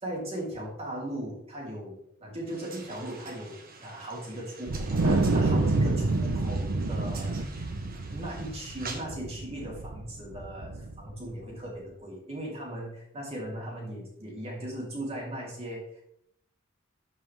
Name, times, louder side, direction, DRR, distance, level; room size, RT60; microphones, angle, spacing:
voice 1, 0.0-16.0, right 1 dB, 30° right, -3 dB, 3.1 m, -38 dB
sound 1, 2.5-9.0, right 4 dB, 50° right, 1.5 m, -46 dB
Wind, 4.7-11.2, right 2 dB, 85° right, 0.7 m, -28 dB
12.5 x 5.5 x 3.3 m, 0.73 s
head